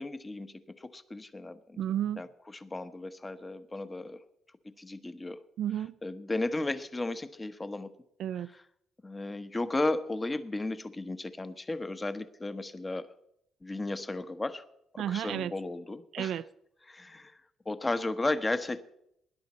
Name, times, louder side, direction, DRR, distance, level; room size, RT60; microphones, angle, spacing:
voice 1, 0.0-1.8 2.2-2.3 2.6-4.2 4.6-5.4 6.0-7.9 9.0-13.1 13.6-14.6 15.1-16.3 16.9-17.3 17.7-18.9, left 2 dB, 20° left, 1.0 m, -34 dB
voice 2, 1.8-2.2 5.6-5.9 8.2-8.5 15.0-15.5 16.1-16.4, right 10 dB, 75° right, 0.4 m, -32 dB
19.5 x 10.5 x 4.3 m
cardioid pair, 90°, 0 cm